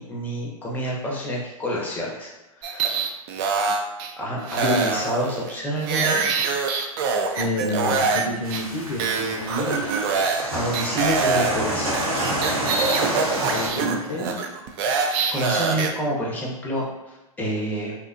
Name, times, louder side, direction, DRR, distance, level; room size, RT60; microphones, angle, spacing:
voice 1, 0.0-2.9 4.2-6.2 10.5-12.2 15.0-17.9, right 1 dB, 10° left, -3 dB, 0.6 m, -28 dB
sound 1, 2.6-4.1 4.5-8.2 8.5-8.6 9.0-10.5 10.7-15.9, right 4 dB, 40° right, 0.4 m, -24 dB
voice 2, 7.4-9.9 13.5-14.4, left 2 dB, 70° left, -1 dB, 0.5 m, -29 dB
sound 2, 8.4-13.7, right 1 dB, 80° right, 0.9 m, -28 dB
2.7 x 2.1 x 2.5 m, 1.0 s
hypercardioid pair, 110°, 18 cm